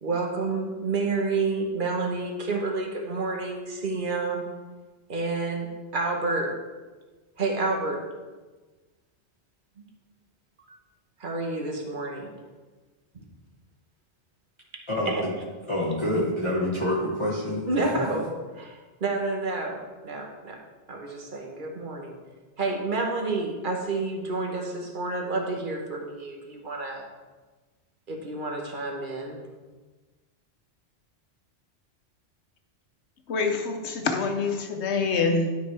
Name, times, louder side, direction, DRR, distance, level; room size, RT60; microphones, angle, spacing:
voice 1, 0.0-4.5 5.1-6.6 7.4-8.0 11.2-12.3 15.1-15.3 15.9-16.0 17.7-20.6 20.9-22.1 22.6-27.0 28.1-29.4, right 3 dB, 45° right, 1 dB, 1.3 m, -29 dB
voice 2, 14.9-15.3 15.7-18.0, left 1 dB, 25° left, -6 dB, 1.1 m, -27 dB
voice 3, 33.3-35.6, left 4 dB, 70° left, 5 dB, 1.1 m, -26 dB
11.5 x 5.2 x 3.4 m, 1.3 s
omnidirectional pair, 1.2 m